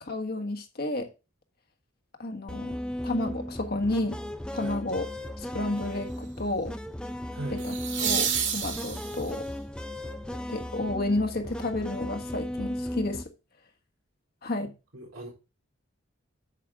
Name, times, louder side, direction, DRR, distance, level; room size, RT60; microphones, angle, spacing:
voice 1, 0.0-1.1 2.2-2.8 3.0-4.2 4.5-5.0 5.4-6.7 7.5-9.4 10.5-13.3 14.4-14.7, left 2 dB, 45° left, 1.4 m, -31 dB
sound 1, 2.5-13.2, left 1 dB, 5° left, 0.5 m, -36 dB
sound 2, 4.5-4.9 7.6-9.5 12.3-12.4, right 7 dB, 55° right, 2.2 m, -30 dB
voice 2, 7.3-7.7 14.9-15.3, right 1 dB, 85° right, 4.0 m, -38 dB
8.5 x 7.5 x 3.6 m
head